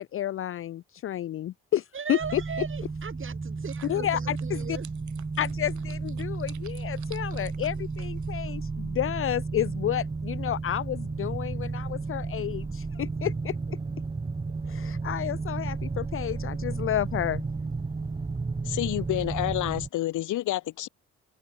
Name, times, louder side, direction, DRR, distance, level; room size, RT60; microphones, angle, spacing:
voice 1, 0.0-2.4 3.8-4.8 5.4-13.8 14.7-17.4, left 11 dB, 45° left, 0.4 m, -31 dB
voice 2, 1.9-4.9, right 6 dB, 40° right, 5.5 m, -38 dB
sound 1, 2.2-19.9, right 4 dB, 20° right, 0.9 m, -33 dB
sound 2, 3.6-8.7, right 11 dB, 70° right, 5.3 m, -52 dB
voice 3, 18.6-20.9, left 15 dB, 80° left, 1.7 m, -29 dB
cardioid pair, 90°, 30 cm